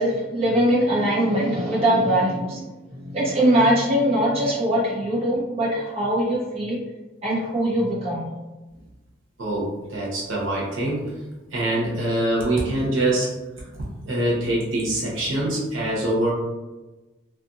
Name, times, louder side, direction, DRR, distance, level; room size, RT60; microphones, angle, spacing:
voice 1, 0.0-2.6 2.9-6.8 7.2-8.2, right 1 dB, 30° right, -8 dB, 0.8 m, -21 dB
voice 2, 9.4-11.0 11.5-13.3 14.0-16.3, right 1 dB, 80° right, -5 dB, 1.0 m, -24 dB
2.7 x 2.5 x 2.6 m, 1.1 s
head